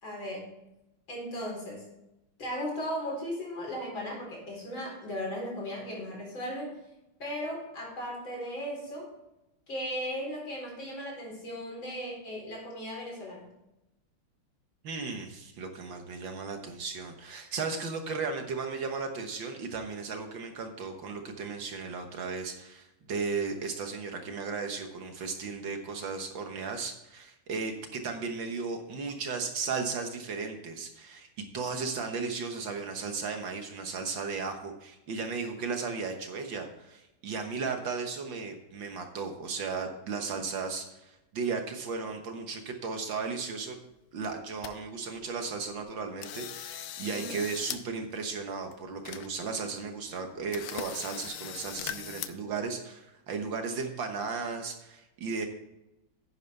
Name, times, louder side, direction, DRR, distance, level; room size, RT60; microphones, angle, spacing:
voice 1, 0.0-0.5 1.1-1.8 2.4-6.7 7.2-9.1 9.7-13.5 47.1-47.4, equal, 60° left, -2 dB, 5.0 m, -36 dB
voice 2, 14.8-31.3 31.5-43.8 44.1-55.5, right 4 dB, 65° right, 5 dB, 1.9 m, -35 dB
sound 1, 43.9-44.0 44.2-44.7 45.2-45.3 45.7-45.9 46.2-47.8 48.1-48.2 48.7-48.8 49.0-49.7 50.0-50.1 50.5-52.3, left 11 dB, 80° left, 1.6 m, -40 dB
11.0 x 9.5 x 3.4 m, 0.92 s
omnidirectional pair, 2.4 m